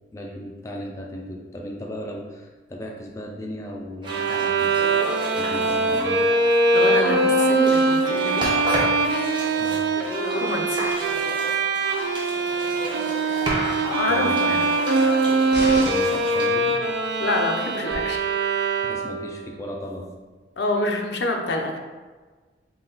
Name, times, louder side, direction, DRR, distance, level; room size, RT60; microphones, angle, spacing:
voice 1, 0.1-6.3 9.6-9.9 12.0-12.1 14.1-14.7 15.7-16.8 18.8-20.1, equal, 15° left, 0 dB, 0.3 m, -36 dB
sound 1, 4.0-17.6, right 1 dB, 30° right, 0.7 m, -33 dB
Bowed string instrument, 4.1-19.3, right 3 dB, 65° right, 0.4 m, -22 dB
voice 2, 6.7-8.5 9.9-10.9 13.2-13.4 13.8-14.7 17.2-18.2 20.6-21.8, left 2 dB, 70° left, 2 dB, 0.5 m, -27 dB
sound 2, 15.5-16.3 17.9-18.0, equal, 85° right, 1.0 m, -32 dB
3.7 x 2.3 x 3.9 m, 1.4 s
head